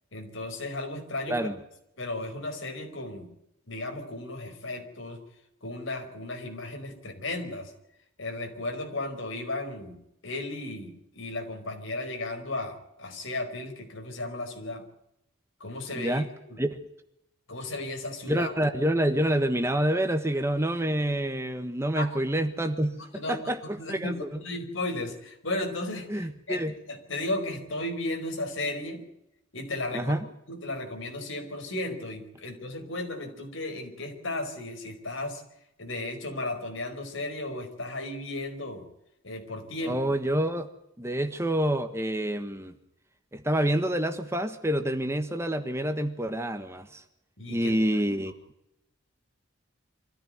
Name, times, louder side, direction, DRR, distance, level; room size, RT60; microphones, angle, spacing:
voice 1, 0.1-1.5 2.0-3.3 3.7-5.2 5.6-7.7 8.2-14.9 15.6-16.6 17.5-18.5 21.9-22.1 23.0-23.4 23.6-29.0 29.5-30.1 30.5-35.4 35.8-38.8 39.2-40.0 47.4-47.7, left 2 dB, 70° left, 5 dB, 4.9 m, -35 dB
voice 2, 15.9-16.3 16.6-16.8 18.3-23.0 23.3-23.6 23.9-24.1 26.1-26.7 29.9-30.2 39.8-40.7 41.0-42.7 43.3-47.0 47.5-48.3, right 1 dB, 15° right, 8 dB, 1.3 m, -27 dB
25.0 x 15.0 x 9.5 m, 0.83 s
head